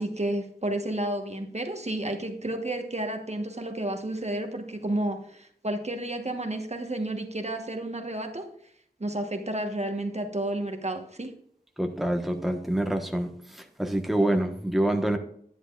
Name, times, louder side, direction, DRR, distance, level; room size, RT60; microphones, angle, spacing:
voice 1, 0.0-8.5 9.0-11.3 14.2-14.4, right 1 dB, 45° right, 5 dB, 1.2 m, -31 dB
voice 2, 11.8-13.3 13.8-15.2, right 1 dB, ahead, 3 dB, 1.2 m, -26 dB
11.0 x 10.0 x 2.4 m, 0.64 s
wide cardioid pair, 55°, 16 cm